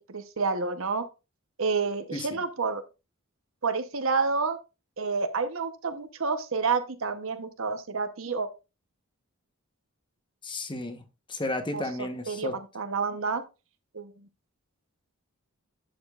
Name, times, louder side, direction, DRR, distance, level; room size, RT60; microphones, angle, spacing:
voice 1, 0.1-1.0 1.6-2.8 3.6-4.6 5.0-8.5 11.7-11.8 12.3-12.5 12.7-13.4 13.9-14.1, right 4 dB, 65° right, 0.9 m, -29 dB
voice 2, 10.4-12.5, left 2 dB, 20° left, 1.0 m, -33 dB
11.5 x 6.9 x 2.4 m
head